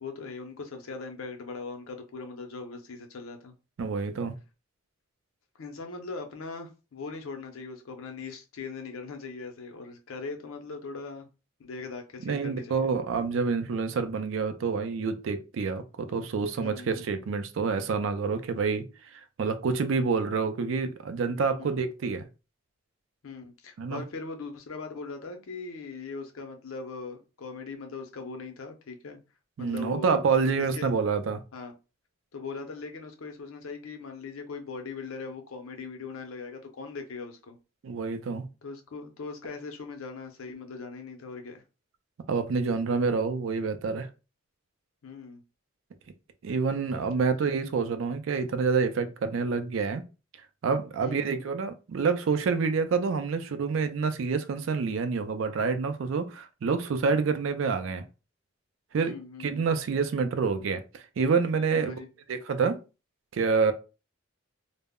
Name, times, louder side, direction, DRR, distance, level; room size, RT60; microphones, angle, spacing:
voice 1, 0.0-3.5 5.6-11.3 11.6-12.9 16.6-17.1 20.0-20.2 21.6-21.8 23.2-29.2 29.6-30.2 30.7-30.9 31.5-31.7 32.3-37.6 38.6-41.6 45.0-45.4 46.7-47.3 51.0-51.3 59.0-59.7 61.7-62.1, left 4 dB, 90° left, 0.6 m, -40 dB
voice 2, 3.8-4.3 12.2-18.8 19.4-22.3 23.8-24.0 29.6-31.4 37.8-38.5 42.3-44.1 46.4-50.0 50.6-58.0 58.9-61.9 62.3-62.8 63.3-63.7, right 5 dB, 70° right, 0.4 m, -27 dB
2.0 x 2.0 x 3.5 m
head